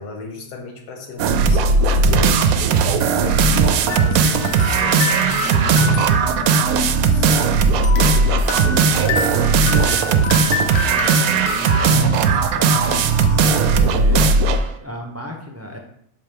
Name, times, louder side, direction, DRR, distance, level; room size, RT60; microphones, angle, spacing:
voice 1, 0.0-7.4, left 3 dB, 80° left, 3 dB, 1.7 m, -35 dB
sound 1, 1.2-14.7, right 4 dB, 70° right, 1.0 m, -17 dB
sound 2, 3.9-7.4 7.8-13.8, left 4 dB, 60° left, 0.9 m, -28 dB
voice 2, 8.1-10.3 10.9-13.1 13.7-14.3 14.8-15.8, equal, 15° right, 1 dB, 0.5 m, -34 dB
6.1 x 4.4 x 5.2 m, 0.71 s
omnidirectional pair, 1.7 m